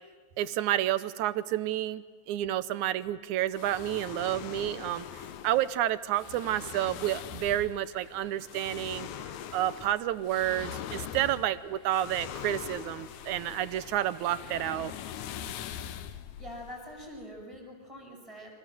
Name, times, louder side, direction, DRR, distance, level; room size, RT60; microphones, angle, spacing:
voice 1, 0.4-5.1 5.4-9.1 9.5-14.9, right 13 dB, 90° right, 15 dB, 2.4 m, -30 dB
sound 1, 3.5-17.4, left 10 dB, 80° left, 2.3 m, -42 dB
sound 2, 4.4-15.6, left 1 dB, 45° left, 5.7 m, -56 dB
voice 2, 15.9-18.5, equal, 10° right, 2 dB, 7.4 m, -45 dB
30.0 x 25.5 x 7.7 m, 1.5 s
omnidirectional pair, 3.3 m